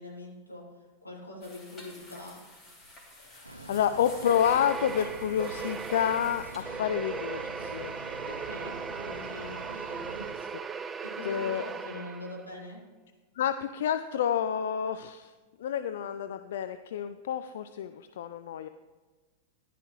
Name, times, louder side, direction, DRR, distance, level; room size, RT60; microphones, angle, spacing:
voice 1, 0.0-2.4 8.2-10.1 11.0-12.8, left 2 dB, 85° left, -3 dB, 2.9 m, -43 dB
sound 1, 1.4-6.6, left 1 dB, 20° left, 2.9 m, -52 dB
voice 2, 3.2-8.0 11.3-11.6 13.4-15.3 15.6-18.7, left 9 dB, 60° left, 10 dB, 0.4 m, -29 dB
sound 2, 3.4-10.3, right 1 dB, 85° right, 0.7 m, -45 dB
sound 3, 4.2-12.5, right 5 dB, 20° right, 0.4 m, -38 dB
14.0 x 11.0 x 3.1 m, 1.3 s
figure-of-eight pair, 90°, 0 cm